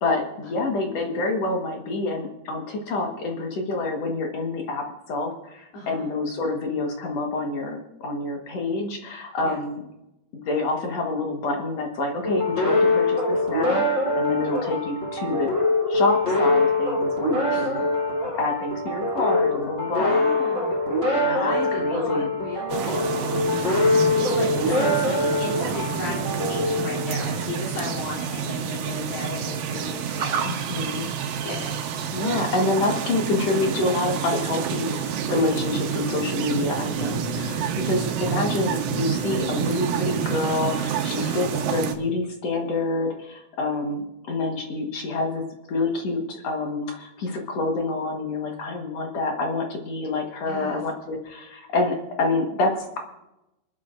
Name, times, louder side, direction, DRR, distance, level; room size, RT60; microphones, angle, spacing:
voice 1, 0.0-9.8 10.3-15.5 15.9-17.9 18.3-20.8 21.1-22.4 24.6-24.9 30.5-31.1 32.1-45.4 45.7-53.0, left 2 dB, 55° left, 2 dB, 1.9 m, -27 dB
voice 2, 5.7-6.1 9.4-9.6 17.5-17.9 19.9-20.8 21.4-23.5 24.0-30.5 31.4-31.7 41.2-41.5 50.5-50.8, left 3 dB, 75° left, -5 dB, 5.2 m, -35 dB
sound 1, 12.2-27.6, left 2 dB, 20° left, 4.2 m, -24 dB
sound 2, 22.7-41.9, right 7 dB, 75° right, 2.6 m, -28 dB
27.5 x 11.0 x 2.6 m, 0.91 s
omnidirectional pair, 4.7 m